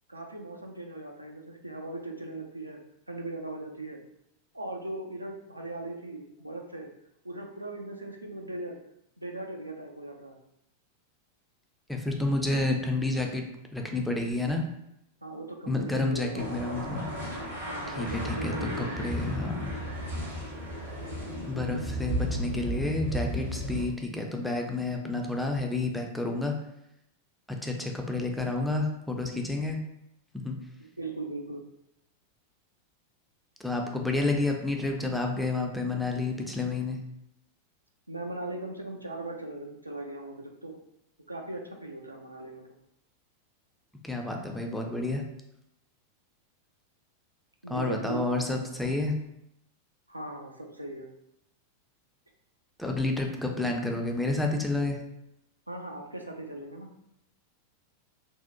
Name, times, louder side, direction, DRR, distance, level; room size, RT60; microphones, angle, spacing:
voice 1, 0.1-2.8 3.1-4.0 4.5-6.9 7.2-8.8 9.2-10.4 15.2-16.5 17.7-19.2 30.8-31.6 38.1-40.8 41.3-42.6 47.6-48.3 50.1-51.1 55.7-56.9, right 2 dB, 85° right, 1 dB, 0.3 m, -39 dB
voice 2, 11.9-13.4 13.7-14.6 15.7-17.0 17.9-19.7 21.5-26.5 27.5-29.8 30.4-30.6 33.6-37.0 44.0-45.2 47.7-49.1 52.8-55.0, left 2 dB, ahead, 1 dB, 0.3 m, -30 dB
sound 1, 16.4-23.8, equal, 65° right, 0.8 m, -34 dB
2.6 x 2.0 x 2.5 m, 0.81 s
figure-of-eight pair, 90°, 0 cm